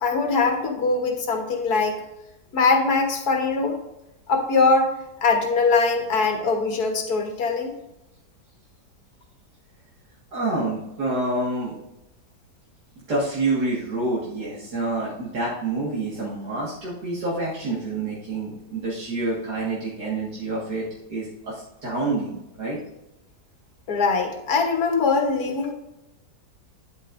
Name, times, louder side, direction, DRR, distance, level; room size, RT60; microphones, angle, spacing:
voice 1, 0.0-2.0 2.5-3.8 4.3-5.0 5.2-7.7 23.9-25.7, left 4 dB, 65° left, 3 dB, 1.7 m, -22 dB
voice 2, 10.3-11.8 13.1-22.8, right 2 dB, 75° right, -6 dB, 2.4 m, -27 dB
9.8 x 8.5 x 2.6 m, 0.91 s
omnidirectional pair, 1.8 m